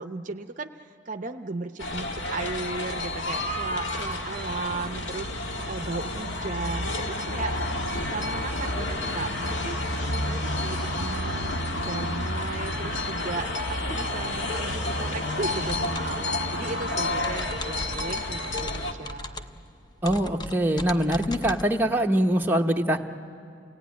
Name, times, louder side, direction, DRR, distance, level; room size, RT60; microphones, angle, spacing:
voice 1, 0.0-7.5 7.9-9.8 10.1-11.5 11.8-19.6, right 3 dB, 45° right, 7 dB, 0.6 m, -36 dB
sound 1, 1.8-18.9, left 1 dB, 85° left, 1.8 m, -30 dB
sound 2, 15.6-21.7, left 1 dB, 25° left, 0.6 m, -39 dB
voice 2, 20.0-23.0, right 1 dB, 10° right, 2 dB, 0.9 m, -23 dB
29.0 x 17.5 x 9.4 m, 2.4 s
head